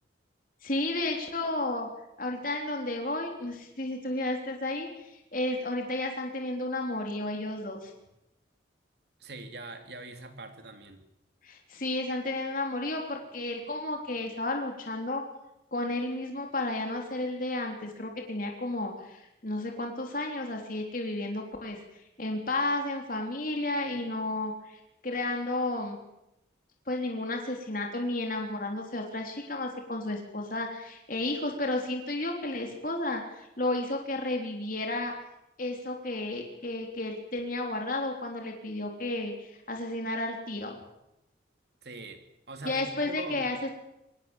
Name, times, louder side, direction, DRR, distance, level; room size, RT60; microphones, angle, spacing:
voice 1, 0.6-1.9 2.2-7.9 11.4-15.2 15.7-21.8 22.2-26.0 26.9-35.1 35.6-40.8 42.6-43.7, left 2 dB, 45° left, 2 dB, 3.6 m, -32 dB
voice 2, 9.2-11.0 41.8-43.5, right 2 dB, 60° right, 6 dB, 3.2 m, -42 dB
25.0 x 19.0 x 7.2 m, 0.86 s
head